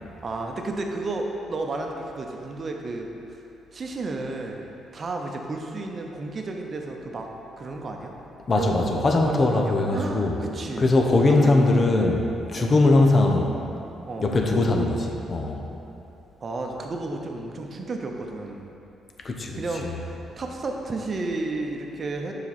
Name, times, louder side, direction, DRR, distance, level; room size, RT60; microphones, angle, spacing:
voice 1, 0.2-3.4 3.7-4.7 4.9-7.3 7.6-8.1 8.6-10.9 11.3-12.2 12.6-12.8 14.1-14.3 16.4-18.7 19.6-22.3, right 2 dB, 40° right, 2 dB, 0.8 m, -32 dB
voice 2, 8.5-10.4 10.8-12.2 12.5-13.6 14.2-15.6 19.2-19.9, left 2 dB, 40° left, 2 dB, 0.7 m, -21 dB
7.1 x 5.0 x 4.2 m, 2.9 s
cardioid pair, 90°, 0 cm